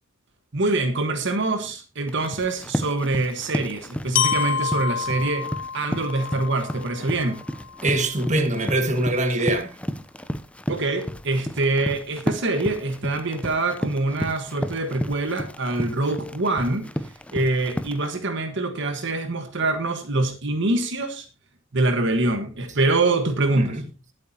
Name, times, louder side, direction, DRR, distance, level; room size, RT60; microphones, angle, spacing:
voice 1, 0.5-5.5 5.7-7.4 10.7-16.9 17.3-21.2 21.7-23.8, right 2 dB, 60° right, 1.5 m, -24 dB
Run, 2.1-18.1, equal, 5° left, 0.6 m, -33 dB
Glockenspiel, 4.1-8.1, left 7 dB, 65° left, 0.6 m, -28 dB
voice 2, 7.8-9.8 23.5-23.8, right 1 dB, 35° right, 1.8 m, -23 dB
20.0 x 8.4 x 2.9 m
head